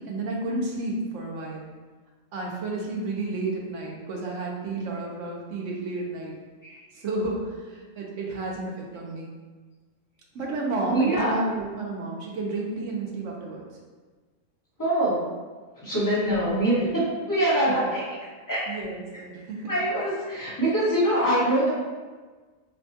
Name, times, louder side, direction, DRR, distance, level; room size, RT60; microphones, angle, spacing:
voice 1, 0.0-1.7 2.3-6.3 7.0-9.3 10.3-13.6 16.0-17.0 18.7-19.7, right 2 dB, 70° right, -2 dB, 1.0 m, -31 dB
voice 2, 10.9-11.3 14.8-15.3 15.8-18.0 18.5-18.6 19.7-21.7, right 1 dB, 15° left, -9 dB, 1.0 m, -24 dB
4.4 x 2.2 x 2.7 m, 1.4 s
omnidirectional pair, 1.4 m